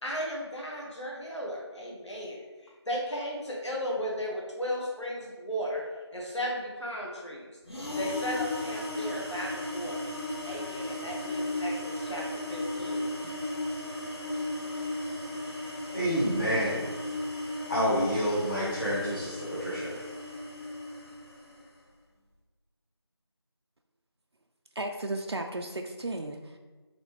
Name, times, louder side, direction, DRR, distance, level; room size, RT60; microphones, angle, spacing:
voice 1, 0.0-2.4 2.9-5.8 6.1-7.4 8.0-10.1 10.5-12.2 12.5-13.1, equal, 80° left, -3 dB, 1.4 m, -35 dB
sound 1, 7.7-21.6, left 1 dB, 65° left, 1.0 m, -35 dB
voice 2, 15.9-16.8 17.7-20.0, equal, 45° left, -11 dB, 1.2 m, -28 dB
voice 3, 24.8-26.6, right 2 dB, 65° right, 4 dB, 0.4 m, -34 dB
4.1 x 3.2 x 3.1 m, 1.3 s
figure-of-eight pair, 180°, 15 cm